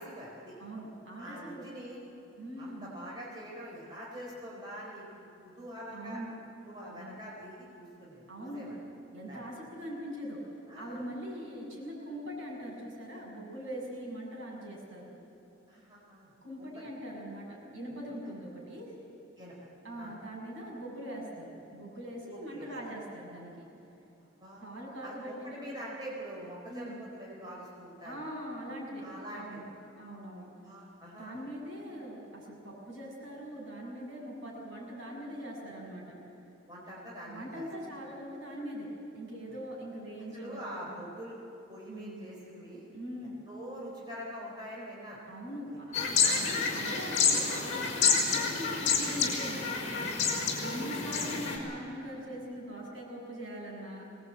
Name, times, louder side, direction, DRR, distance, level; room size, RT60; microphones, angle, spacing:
voice 1, 0.0-0.5 1.2-2.0 2.6-6.2 6.7-8.8 9.3-9.5 10.7-11.0 15.7-16.3 16.6-16.7 19.4-19.5 19.9-20.1 22.3-22.7 24.4-24.6 25.0-28.2 29.0-29.7 30.6-31.4 36.7-37.7 40.3-41.4 41.7-42.8 43.5-45.2 46.2-46.4 51.1-51.3, equal, 20° right, -5 dB, 4.2 m, -44 dB
voice 2, 0.6-1.7 2.4-3.0 5.9-6.3 6.9-7.2 8.3-8.7 9.1-15.1 16.4-18.9 19.8-23.6 24.6-25.7 26.7-27.0 28.0-29.1 29.4-29.7 30.0-30.5 31.1-36.0 37.3-38.9 39.1-41.0 41.9-42.3 42.9-43.4 45.3-46.0 46.3-49.6 50.6-54.0, equal, 70° right, -3 dB, 7.0 m, -42 dB
sound 1, 45.9-51.6, left 5 dB, 35° left, 4.5 m, -29 dB
22.5 x 19.5 x 8.6 m, 2.9 s
head